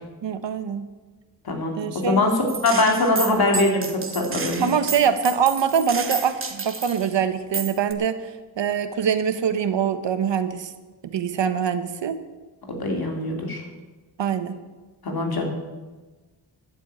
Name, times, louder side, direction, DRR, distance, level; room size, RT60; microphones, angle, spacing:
voice 1, 0.2-0.9 1.8-2.2 4.6-10.7 11.0-12.2 14.2-14.6, right 7 dB, 85° right, 10 dB, 1.2 m, -24 dB
voice 2, 1.4-2.3 2.6-4.7 12.7-13.6 15.0-15.5, left 2 dB, 55° left, 2 dB, 2.9 m, -22 dB
Gunshot gunfire, 2.5-7.1 7.5-7.9, right 4 dB, 30° right, 1.2 m, -31 dB
12.0 x 8.2 x 8.6 m, 1.2 s
wide cardioid pair, 120°, 43 cm